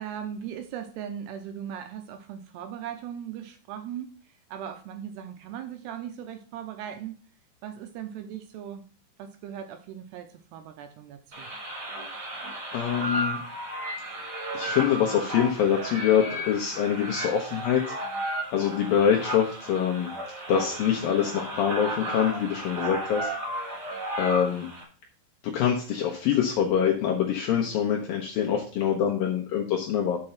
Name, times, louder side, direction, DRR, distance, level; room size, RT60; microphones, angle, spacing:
voice 1, 0.0-7.2 7.6-8.8 9.2-11.5, right 9 dB, 80° right, 7 dB, 2.7 m, -38 dB
sound 1, 11.3-24.8, right 1 dB, 30° right, 2.1 m, -34 dB
voice 2, 12.7-13.4 14.5-17.8 18.5-20.1 20.5-23.3 24.2-24.7 25.5-30.2, left 8 dB, 75° left, 0 dB, 2.1 m, -25 dB
6.7 x 5.3 x 5.8 m, 0.39 s
omnidirectional pair, 5.2 m